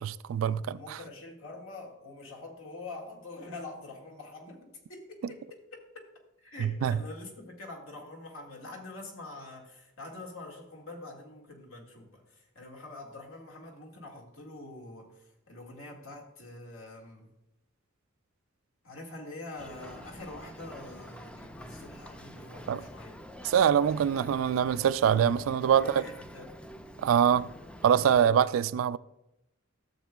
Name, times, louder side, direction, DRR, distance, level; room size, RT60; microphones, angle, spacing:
voice 1, 0.0-1.0 6.6-7.0 22.7-22.8 23.4-26.0 27.0-27.5 27.8-29.0, right 8 dB, 80° right, 0.3 m, -24 dB
voice 2, 0.7-6.1 6.4-17.3 18.8-23.2 25.8-26.6 28.1-28.4, left 2 dB, 80° left, 1.8 m, -45 dB
Boat Water vehicle, 19.6-28.2, equal, 5° left, 0.4 m, -47 dB
13.5 x 7.3 x 2.3 m
head